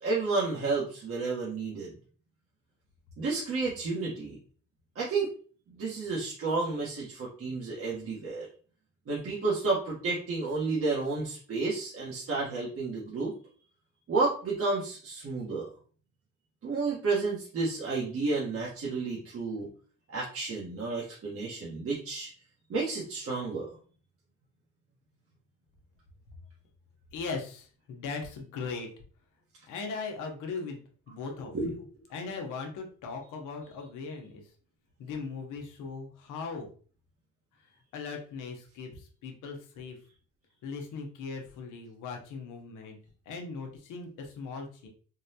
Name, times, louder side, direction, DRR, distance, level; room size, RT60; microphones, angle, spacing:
voice 1, 0.0-1.9 3.2-4.3 4.9-5.3 5.8-8.5 9.1-13.3 14.1-15.7 16.6-19.7 20.1-22.3 22.7-23.7 31.5-31.7, right 3 dB, 50° right, -6 dB, 1.0 m, -31 dB
voice 2, 27.1-28.9 29.7-31.8 32.1-34.4 35.0-36.7 37.6-37.7 37.9-40.0 40.6-43.0 43.3-44.9, left 4 dB, 90° left, 2 dB, 0.9 m, -39 dB
3.8 x 2.2 x 2.7 m, 0.41 s
cardioid pair, 90°, 30 cm